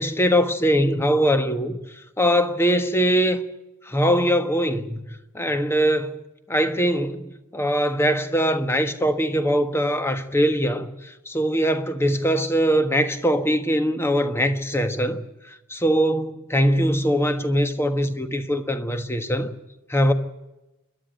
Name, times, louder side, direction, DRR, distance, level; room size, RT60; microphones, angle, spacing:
voice 1, 0.0-3.4 3.8-6.2 6.5-19.5 19.9-20.1, equal, 10° left, 1.3 m, -22 dB
28.0 x 12.0 x 9.1 m
head